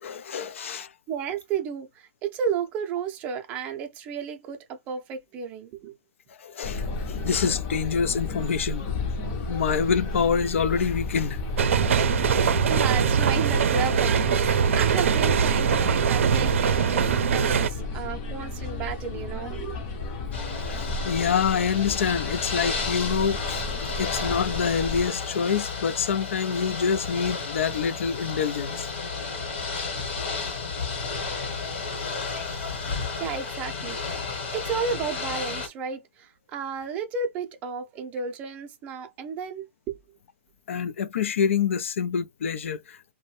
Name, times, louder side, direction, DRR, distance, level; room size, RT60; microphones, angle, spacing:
voice 1, 0.0-0.9 6.4-8.9 9.3-11.4 20.7-23.6 24.0-28.9 40.7-43.1, left 6 dB, 75° left, 0.4 m, -26 dB
voice 2, 1.1-6.0 12.3-19.8 33.2-34.0 34.5-40.0, right 6 dB, 20° right, 0.5 m, -32 dB
sound 1, 6.6-25.1, left 3 dB, 30° left, 0.6 m, -33 dB
sound 2, 11.6-17.7, right 7 dB, 75° right, 0.5 m, -22 dB
Ocean / Boat Water vehicle, 20.3-35.7, left 4 dB, 60° left, 1.1 m, -32 dB
2.6 x 2.1 x 3.1 m
hypercardioid pair, 160°, 7 cm